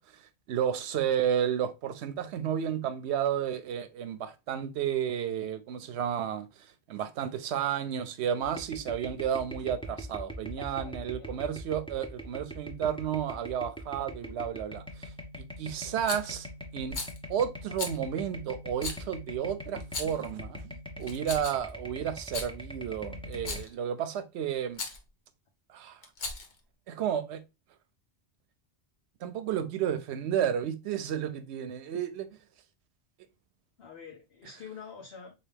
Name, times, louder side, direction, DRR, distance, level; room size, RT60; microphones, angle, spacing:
voice 1, 0.5-6.5 6.9-15.1 15.4-16.5 16.7-17.0 17.3-24.8 25.7-26.0 26.9-27.4 29.2-32.3, right 9 dB, 85° right, 0.9 m, -32 dB
sound 1, 8.4-23.6, equal, 5° left, 0.5 m, -43 dB
voice 2, 10.5-11.3 33.8-35.3, left 6 dB, 70° left, 1.0 m, -47 dB
Rattle, 16.1-16.3 16.9-17.2 17.8-18.0 18.8-19.0 19.8-20.3 21.0-21.7 22.2-22.5 23.3-23.7 24.7-25.0 26.0-26.6, left 3 dB, 50° left, 0.8 m, -37 dB
3.8 x 2.7 x 3.3 m
omnidirectional pair, 1.1 m